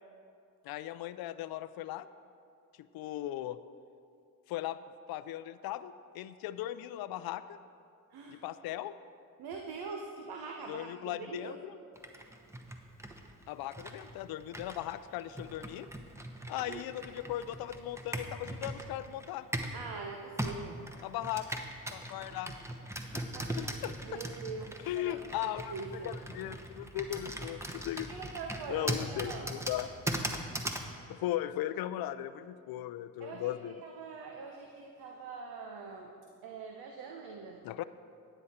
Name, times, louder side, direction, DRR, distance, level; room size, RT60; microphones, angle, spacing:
voice 1, 0.6-2.1 2.9-3.6 4.5-4.8 5.1-7.6 8.3-8.9 10.7-11.8 13.5-15.9 16.5-19.5 21.0-21.6 21.9-22.5 23.1-23.2 23.6-24.2 24.8-25.7 26.0-28.1 28.7-29.9 31.1-33.7 37.6-37.8, left 13 dB, 65° left, 14 dB, 0.5 m, -38 dB
voice 2, 8.1-8.4 9.4-11.6 16.6-16.8 19.7-20.8 23.3-23.5 24.0-25.3 25.7-26.1 28.1-29.5 33.2-36.1 36.4-37.7, right 4 dB, 75° right, 2 dB, 0.9 m, -43 dB
Computer keyboard, 12.0-19.8 20.4-30.9, right 1 dB, 5° right, 1.0 m, -40 dB
10.0 x 9.1 x 4.3 m, 2.4 s
supercardioid pair, 60°, 38 cm